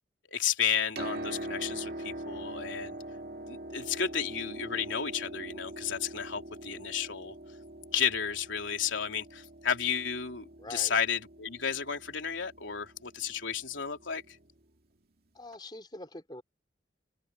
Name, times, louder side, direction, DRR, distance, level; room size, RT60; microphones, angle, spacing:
voice 1, 0.3-3.0 3.5-7.3 7.9-14.2, left 7 dB, 85° left, 3.4 m, -32 dB
Piano, 0.7-14.4 15.5-15.6, right 1 dB, 55° right, 2.3 m, -43 dB
voice 2, 10.6-11.0 15.3-16.4, left 2 dB, 25° left, 3.7 m, -44 dB
head